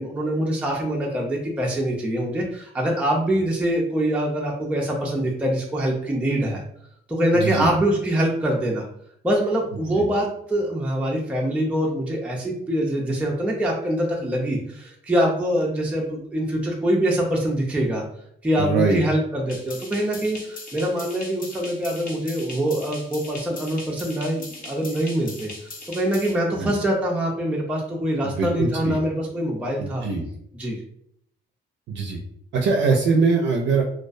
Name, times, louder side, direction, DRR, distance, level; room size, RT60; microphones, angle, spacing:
voice 1, 0.0-6.6 7.1-8.9 9.2-18.0 18.4-25.5 25.9-30.1 30.5-30.8, right 1 dB, 5° right, -2 dB, 0.4 m, -24 dB
voice 2, 7.3-7.7 9.9-10.0 18.6-19.0 26.6-26.7 28.2-29.0 29.8-30.2 31.9-32.2 32.5-33.8, right 4 dB, 65° right, 0 dB, 0.4 m, -22 dB
sound 1, 19.5-26.3, left 2 dB, 45° left, 0.6 m, -39 dB
2.3 x 2.1 x 2.5 m, 0.69 s
cardioid pair, 90°, 20 cm